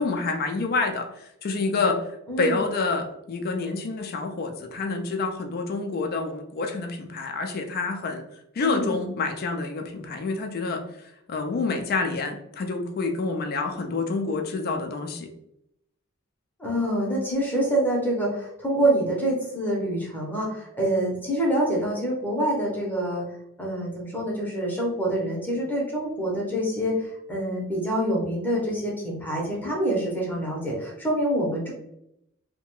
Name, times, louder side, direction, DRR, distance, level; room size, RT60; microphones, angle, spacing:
voice 1, 0.0-2.0 2.4-8.2 8.6-10.8 11.3-15.3, left 3 dB, 45° left, 4 dB, 0.3 m, -28 dB
voice 2, 8.6-8.9 16.6-23.2 23.6-31.7, right 1 dB, 10° left, -3 dB, 0.7 m, -26 dB
2.8 x 2.1 x 3.0 m, 0.79 s
head